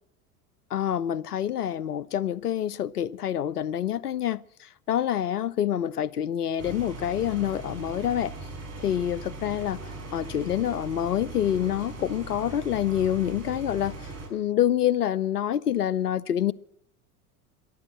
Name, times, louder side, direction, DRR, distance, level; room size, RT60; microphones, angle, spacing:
voice 1, 0.7-8.3 8.8-9.8 10.1-16.5, left 10 dB, 85° left, 0.6 m, -27 dB
sound 1, 6.6-14.3, right 2 dB, 35° right, 5.3 m, -39 dB
14.0 x 12.0 x 7.5 m
figure-of-eight pair, 80°, 45 cm